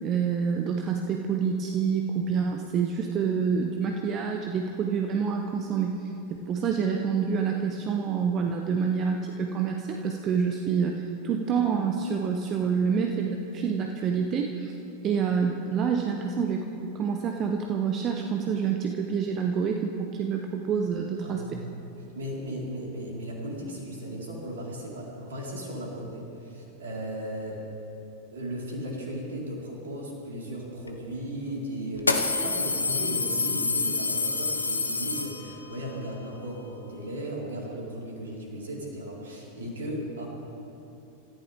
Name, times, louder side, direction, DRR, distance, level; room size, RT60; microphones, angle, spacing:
voice 1, 0.0-6.1 6.4-14.7 15.0-21.6, right 6 dB, 30° right, 3 dB, 1.0 m, -27 dB
voice 2, 21.2-27.6 28.3-40.3, equal, 65° right, -4 dB, 4.5 m, -36 dB
sound 1, 30.9-31.0 32.0-35.8, left 3 dB, 80° left, 1.0 m, -27 dB
27.0 x 14.5 x 3.6 m, 3.0 s
figure-of-eight pair, 90°, 0 cm